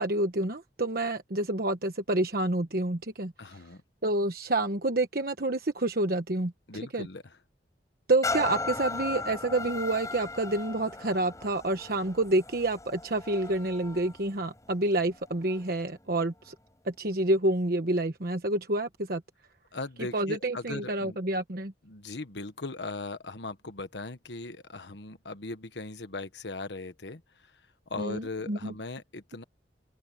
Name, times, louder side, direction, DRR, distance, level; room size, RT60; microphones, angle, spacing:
voice 1, 0.0-3.3 4.0-6.5 6.9-7.1 8.1-16.5 16.8-19.2 20.1-21.7 28.0-28.7, right 2 dB, 60° right, 1.2 m, -28 dB
voice 2, 3.4-3.8 6.7-7.4 19.7-21.2 21.8-27.6 27.9-29.4, left 3 dB, 85° left, 1.3 m, -39 dB
sound 1, 8.2-15.8 16.4-16.5, left 3 dB, 20° left, 5.3 m, -37 dB
open air
head